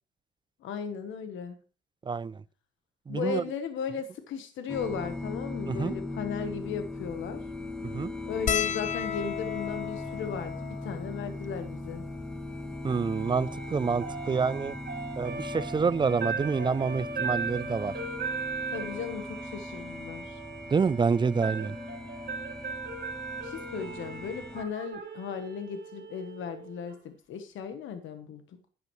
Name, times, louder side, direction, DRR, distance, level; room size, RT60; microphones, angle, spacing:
voice 1, 0.6-1.6 3.1-7.4 8.3-12.0 18.7-20.4 23.4-28.6, left 7 dB, 75° left, 1.2 m, -36 dB
voice 2, 2.1-2.4 3.1-3.4 5.7-6.0 7.9-8.1 12.8-14.7 15.2-17.9 20.7-21.8, right 5 dB, 25° right, 0.4 m, -27 dB
sound 1, 4.7-24.6, left 2 dB, 5° left, 1.2 m, -39 dB
sound 2, 8.5-13.1 13.8-13.9 14.1-14.3 15.6-15.8 17.2-17.3 17.6-17.8, left 8 dB, 40° left, 0.5 m, -36 dB
sound 3, 12.9-27.0, right 4 dB, 60° right, 2.4 m, -38 dB
10.5 x 10.5 x 3.1 m
cardioid pair, 90°, 20 cm